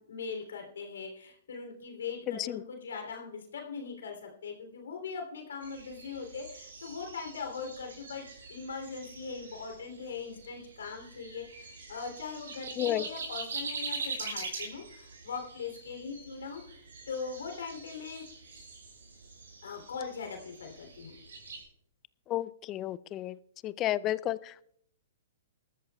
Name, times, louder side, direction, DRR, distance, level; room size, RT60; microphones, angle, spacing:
voice 1, 0.0-16.6 17.1-18.2 19.6-21.2, left 5 dB, 75° left, 3 dB, 3.0 m, -40 dB
voice 2, 2.3-2.6 12.8-13.1 22.3-23.4 23.6-24.6, left 13 dB, 30° left, 18 dB, 0.4 m, -32 dB
sound 1, 5.6-21.6, right 4 dB, 80° right, 5.3 m, -44 dB
21.0 x 13.0 x 2.3 m, 0.68 s
hypercardioid pair, 120°, 0 cm